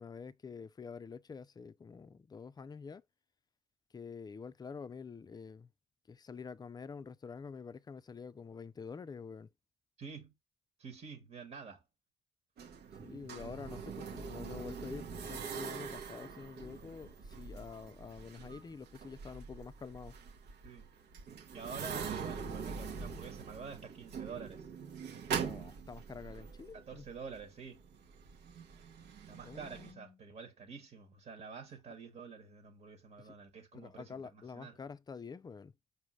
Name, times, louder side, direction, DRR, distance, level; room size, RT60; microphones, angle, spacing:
voice 1, 0.0-3.0 3.9-5.7 6.1-9.5 13.0-20.1 25.4-27.1 29.4-30.2 33.2-33.4 33.7-35.7, left 5 dB, 25° left, 0.4 m, -47 dB
voice 2, 10.0-10.3 10.8-11.8 20.6-20.9 21.5-24.7 26.7-27.8 29.3-34.8, right 5 dB, 45° right, 1.3 m, -48 dB
sound 1, 12.6-29.9, right 6 dB, 70° right, 1.0 m, -43 dB
5.0 x 2.7 x 3.0 m
supercardioid pair, 80°, 17 cm